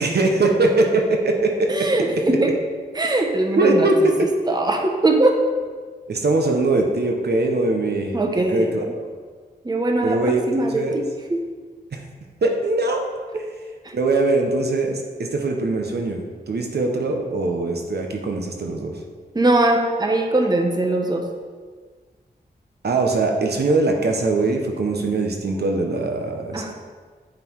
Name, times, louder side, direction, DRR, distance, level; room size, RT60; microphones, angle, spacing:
voice 1, 0.0-1.9 3.6-4.3 6.1-8.2 8.5-9.0 10.0-10.4 10.7-11.0 11.9-12.0 12.4-13.0 13.9-19.0 22.8-26.7, right 2 dB, 70° right, 3 dB, 1.1 m, -21 dB
voice 2, 1.7-2.5 3.0-3.9 4.5-5.4 8.1-8.7 9.6-11.0 11.3-11.4 13.3-13.5 13.8-13.9 19.3-21.2 26.5-26.7, right 2 dB, 25° right, 2 dB, 1.0 m, -21 dB
9.4 x 5.7 x 4.7 m, 1.5 s
wide cardioid pair, 90°, 17 cm